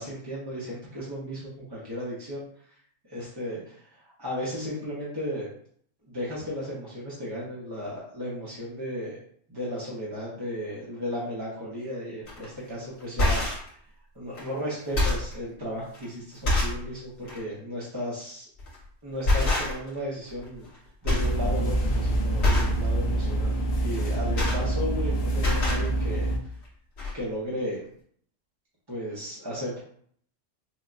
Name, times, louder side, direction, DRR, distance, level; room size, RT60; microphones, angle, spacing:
voice 1, 0.0-2.7 3.0-5.5 6.1-9.2 9.5-13.7 14.1-18.4 19.0-20.7 21.0-26.3 27.1-27.8 28.9-29.8, equal, 25° right, -6 dB, 0.6 m, -35 dB
sound 1, 12.3-12.5 13.0-13.7 14.4-14.5 14.8-15.3 15.9-16.0 16.4-16.8 17.2-17.4 18.6-18.8 19.2-20.0 20.3-20.8 21.0-21.4 21.7-21.9 22.4-22.8 24.0-25.1 25.3-25.9 26.7-26.8 27.0-27.1, left 2 dB, 85° left, 1.8 m, -25 dB
sound 2, 21.2-26.4, right 1 dB, 55° left, 0.8 m, -26 dB
5.9 x 2.1 x 2.5 m, 0.62 s
omnidirectional pair, 1.3 m